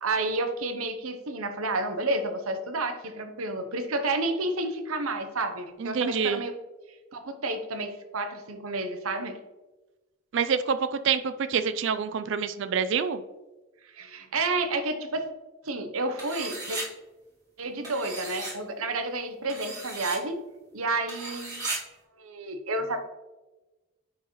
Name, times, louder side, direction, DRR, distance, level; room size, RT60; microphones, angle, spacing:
voice 1, 0.0-6.5 7.1-9.4 13.9-15.3 15.6-16.8 17.6-20.4 20.7-21.7 22.2-23.0, right 2 dB, 85° right, 7 dB, 0.9 m, -30 dB
voice 2, 5.8-6.4 10.3-10.8 11.0-13.2, right 6 dB, 60° right, 11 dB, 0.4 m, -26 dB
sound 1, 16.2-16.9 17.8-18.5 19.5-20.2 21.1-21.8, right 2 dB, 20° right, 2.1 m, -35 dB
10.0 x 4.7 x 3.1 m, 1.1 s
head